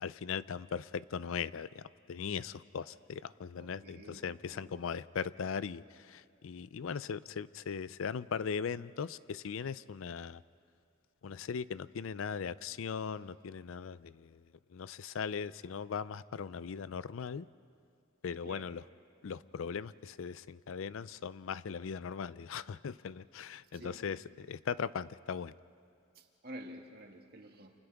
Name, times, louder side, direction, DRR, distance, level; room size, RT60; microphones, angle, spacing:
voice 1, 0.0-10.4 11.2-14.4 14.7-17.5 18.2-18.8 19.2-25.5, left 6 dB, 70° left, 17 dB, 0.4 m, -39 dB
voice 2, 3.5-4.7 18.4-18.7 23.7-24.1 26.1-27.7, right 1 dB, 50° right, 2 dB, 2.0 m, -50 dB
30.0 x 28.5 x 3.5 m, 2.5 s
head